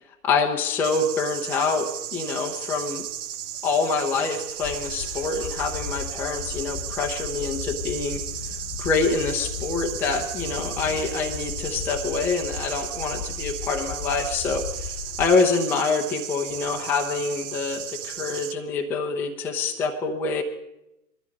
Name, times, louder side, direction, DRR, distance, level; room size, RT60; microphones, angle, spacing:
voice 1, 0.2-3.1 3.6-8.2 8.8-20.4, left 4 dB, 5° left, 1 dB, 0.5 m, -26 dB
sound 1, 0.8-18.5, right 10 dB, 70° right, 0.7 m, -35 dB
sound 2, 4.6-15.3, left 8 dB, 35° left, 1.0 m, -36 dB
19.5 x 13.0 x 5.2 m, 0.89 s
figure-of-eight pair, 120°, 47 cm